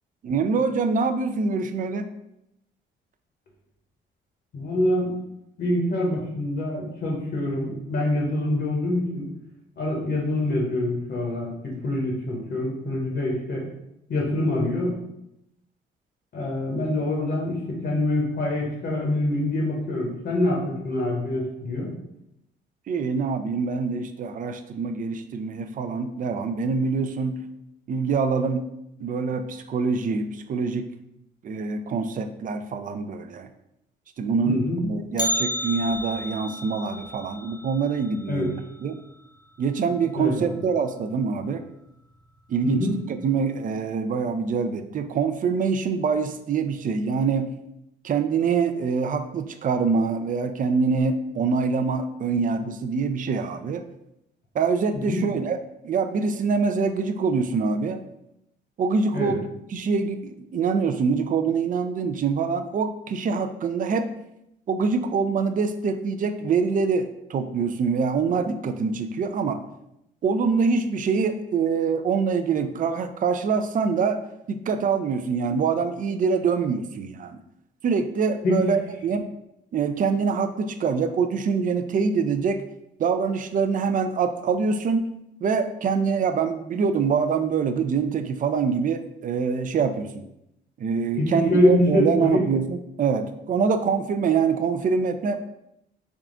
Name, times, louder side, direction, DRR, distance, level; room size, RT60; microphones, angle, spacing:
voice 1, 0.2-2.1 22.9-27.3 27.9-28.6 29.0-30.9 31.4-33.5 34.2-39.0 39.6-41.6 42.5-42.9 43.2-47.5 48.0-53.8 54.5-55.6 55.8-58.0 58.8-64.1 64.7-69.6 70.2-74.2 74.5-77.4 77.8-79.3 79.7-82.6 83.0-85.1 85.4-90.3 90.8-95.4, right 5 dB, 45° right, 9 dB, 0.4 m, -25 dB
voice 2, 4.5-5.2 5.6-9.3 9.8-13.7 14.1-15.0 16.3-21.9 34.5-34.8 38.3-38.5 40.1-40.6 42.6-43.0 54.9-55.3 59.1-59.4 78.4-78.7 91.1-92.4, left 1 dB, 55° left, -1 dB, 1.0 m, -25 dB
Bell, 35.2-39.3 39.5-39.6 40.1-40.2 41.0-41.1 41.9-42.2 42.5-42.6, left 1 dB, 20° left, 0.6 m, -32 dB
3.6 x 2.3 x 3.7 m, 0.83 s
cardioid pair, 90°, 20 cm